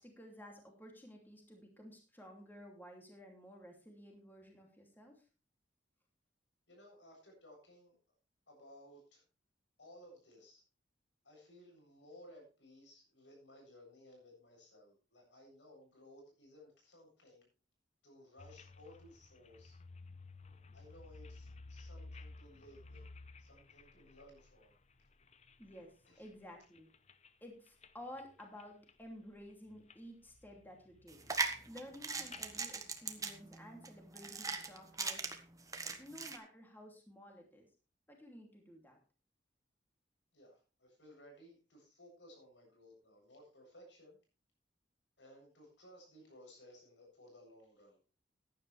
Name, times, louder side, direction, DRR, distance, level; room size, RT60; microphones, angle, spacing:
voice 1, 0.0-5.2 25.6-26.9 27.4-31.2 31.6-35.3 36.0-37.6 38.1-39.0, equal, 10° left, 1 dB, 2.8 m, -53 dB
voice 2, 6.7-8.0 8.5-9.2 9.8-10.6 11.2-17.5 18.0-19.8 20.7-24.7 26.1-26.2 40.3-44.2 45.2-48.0, left 1 dB, 90° left, 0 dB, 7.8 m, -59 dB
sound 1, 18.4-25.8 26.2-27.3 27.7-27.9 28.2-29.1 29.4-30.0 30.3-32.7, left 3 dB, 40° left, 0.8 m, -55 dB
sound 2, 31.1-36.4, right 4 dB, 20° right, 1.4 m, -39 dB
15.0 x 10.5 x 3.3 m, 0.35 s
head